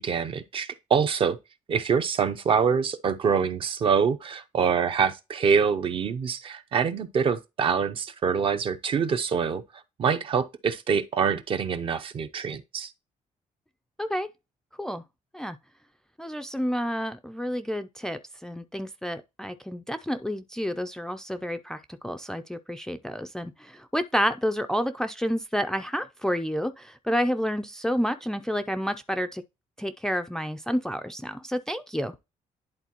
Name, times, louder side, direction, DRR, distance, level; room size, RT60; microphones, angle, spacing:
voice 1, 0.0-1.4 1.7-9.6 10.0-12.9, right 6 dB, 40° right, 0.6 m, -25 dB
voice 2, 16.2-29.4 29.8-32.1, equal, 5° left, 0.4 m, -29 dB
11.0 x 3.9 x 2.9 m
cardioid pair, 155°, 13 cm